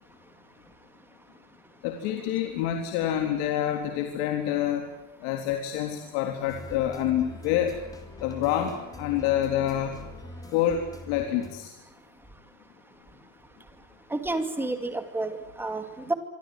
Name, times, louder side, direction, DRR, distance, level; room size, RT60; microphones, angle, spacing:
voice 1, 1.8-4.8 5.2-7.7 8.2-10.0 10.5-11.7, left 11 dB, 85° left, 4 dB, 3.7 m, -27 dB
sound 1, 6.5-11.6, left 1 dB, 10° left, 3.6 m, -43 dB
voice 2, 14.1-16.1, right 2 dB, 5° right, 7 dB, 2.4 m, -30 dB
26.0 x 24.5 x 7.8 m, 1.0 s
cardioid pair, 175°, 32 cm